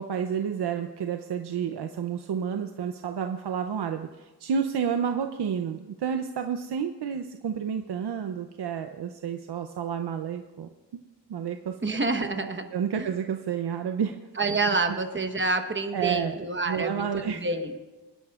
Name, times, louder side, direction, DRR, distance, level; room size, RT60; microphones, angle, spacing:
voice 1, 0.0-10.7 11.3-11.8 12.7-14.2 15.9-16.3 16.7-17.4, right 7 dB, 70° right, 6 dB, 0.7 m, -30 dB
voice 2, 11.8-12.7 13.0-13.1 14.4-17.7, right 3 dB, 25° right, 6 dB, 1.1 m, -28 dB
26.5 x 11.0 x 2.4 m, 1.2 s
wide cardioid pair, 105°, 42 cm